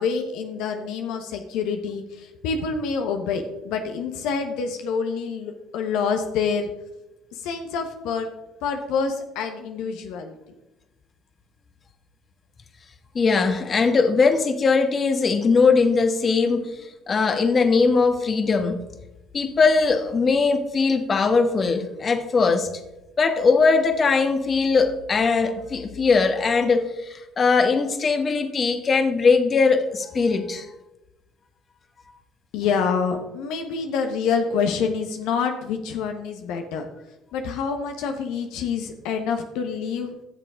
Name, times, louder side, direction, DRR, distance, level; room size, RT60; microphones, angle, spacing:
voice 1, 0.0-6.7 7.3-8.3 8.6-10.4 32.5-36.9 37.3-40.1, left 5 dB, 75° left, 5 dB, 1.0 m, -27 dB
voice 2, 13.1-18.8 19.3-22.7 23.2-30.7, left 4 dB, 40° left, 7 dB, 1.3 m, -20 dB
13.5 x 6.9 x 3.7 m, 0.97 s
supercardioid pair, 70°, 0 cm